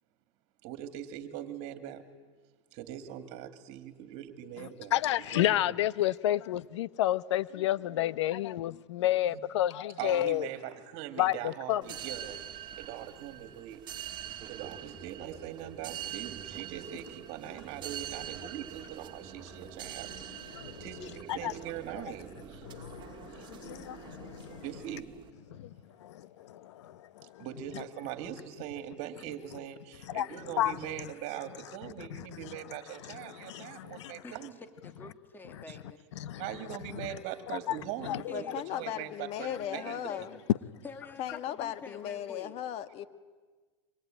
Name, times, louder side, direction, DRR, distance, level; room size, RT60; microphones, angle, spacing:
voice 1, 0.6-2.0 2.7-5.7 9.3-9.4 10.0-12.4 12.8-13.8 14.5-20.4 20.7-22.7 23.3-23.5 24.6-25.1 27.4-34.5 35.7-35.8 36.4-38.5 38.7-40.3, right 11 dB, 45° right, 2.4 m, -41 dB
voice 2, 4.6-10.5 11.2-11.8 20.5-20.9 21.3-21.5 22.6-24.6 25.5-25.7 26.0-27.5 30.1-30.3 30.6-30.8 32.1-32.5 33.0-34.2 36.2-36.4 36.9-37.1 37.7-37.8 38.0-38.5, left 13 dB, 75° left, 1.0 m, -31 dB
sound 1, 11.8-25.3, right 10 dB, 30° right, 1.9 m, -44 dB
voice 3, 34.2-36.0 38.0-39.0 39.4-40.4 40.8-42.5, left 3 dB, 15° left, 2.5 m, -48 dB
voice 4, 38.3-40.4 41.2-43.1, left 10 dB, 45° left, 1.7 m, -37 dB
27.0 x 24.0 x 9.2 m
supercardioid pair, 125°, 15 cm